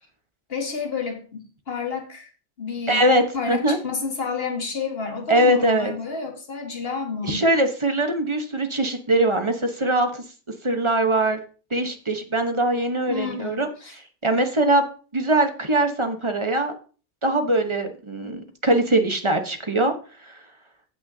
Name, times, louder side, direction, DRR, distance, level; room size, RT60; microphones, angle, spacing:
voice 1, 0.5-2.3 2.6-3.1 3.3-7.5 13.1-14.0, left 5 dB, 55° left, 4 dB, 1.7 m, -30 dB
voice 2, 2.9-3.2 3.5-3.8 5.3-5.9 7.2-10.2 10.6-11.4 11.7-14.9 15.1-16.7 17.2-19.9 20.2-20.4, right 1 dB, 25° right, 6 dB, 1.0 m, -22 dB
15.0 x 6.2 x 2.7 m, 0.37 s
omnidirectional pair, 1.2 m